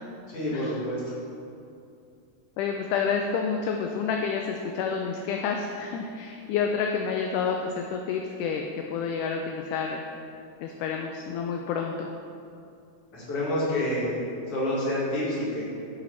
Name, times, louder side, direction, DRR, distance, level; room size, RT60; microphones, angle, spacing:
voice 1, 0.3-1.1 13.1-14.2 14.5-15.6, left 1 dB, 45° left, -8 dB, 2.9 m, -28 dB
voice 2, 2.6-10.0 10.6-12.1, left 6 dB, 80° left, 2 dB, 1.9 m, -29 dB
8.1 x 7.0 x 4.2 m, 2.5 s
omnidirectional pair, 3.9 m